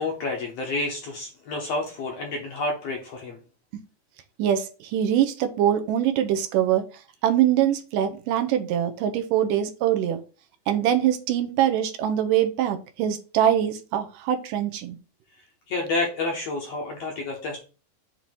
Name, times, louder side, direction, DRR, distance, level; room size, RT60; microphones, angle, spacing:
voice 1, 0.0-3.4 15.7-17.6, left 2 dB, 65° left, 1 dB, 1.7 m, -29 dB
voice 2, 4.4-6.8 7.2-10.2 10.7-15.0, right 10 dB, 80° right, 6 dB, 2.3 m, -23 dB
7.5 x 2.8 x 4.5 m, 0.34 s
omnidirectional pair, 3.9 m